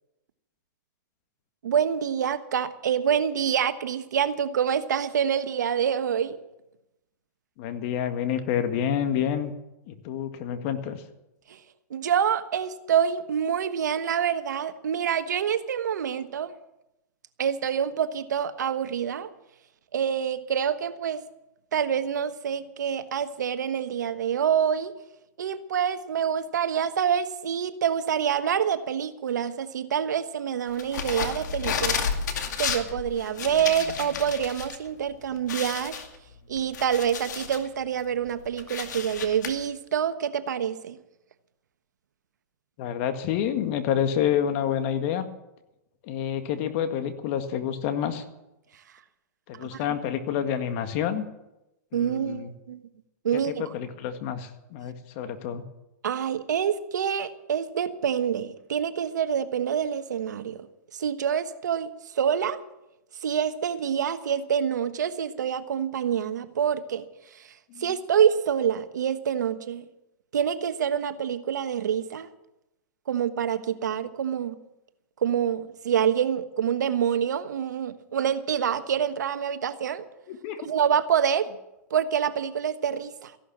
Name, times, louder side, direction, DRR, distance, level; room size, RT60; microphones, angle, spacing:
voice 1, 1.6-6.4 11.5-11.6 11.9-16.5 17.4-19.3 19.9-21.2 21.7-24.9 25.4-32.1 32.6-36.0 36.5-41.0 49.5-49.8 51.9-52.8 53.2-53.6 56.0-60.7 60.9-62.6 63.2-67.1 67.3-67.5 67.8-69.9 70.3-72.3 73.1-74.6 75.2-80.1 80.6-81.5 81.9-83.3, right 8 dB, 85° right, 10 dB, 1.3 m, -26 dB
voice 2, 7.6-9.5 9.9-11.0 42.8-45.3 46.0-48.2 49.5-51.2 51.9-52.5 53.3-55.6 67.7-67.9 80.3-80.7, left 9 dB, 45° left, 8 dB, 1.9 m, -28 dB
sound 1, 30.8-34.8 35.1-35.2 35.5-37.7 38.1-39.5, left 6 dB, 80° left, 2.3 m, -31 dB
15.5 x 11.5 x 7.3 m, 0.92 s
hypercardioid pair, 135°, 9 cm